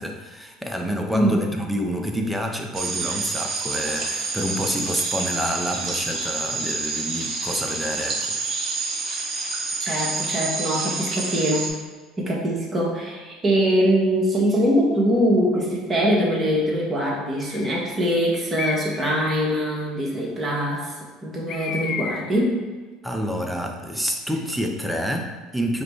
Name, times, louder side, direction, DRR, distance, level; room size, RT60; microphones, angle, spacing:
voice 1, 0.0-8.8 23.0-25.8, equal, 5° right, 3 dB, 0.7 m, -28 dB
sound 1, 2.7-11.7, right 4 dB, 45° right, 0.9 m, -28 dB
voice 2, 9.8-11.7 12.2-20.9 21.2-22.6, equal, 30° right, -3 dB, 1.3 m, -22 dB
Bird, 16.1-16.6 17.4-17.9 18.5-19.2 21.5-22.5, left 6 dB, 55° left, 0.4 m, -32 dB
5.0 x 2.2 x 4.5 m, 1.3 s
supercardioid pair, 80°, 0 cm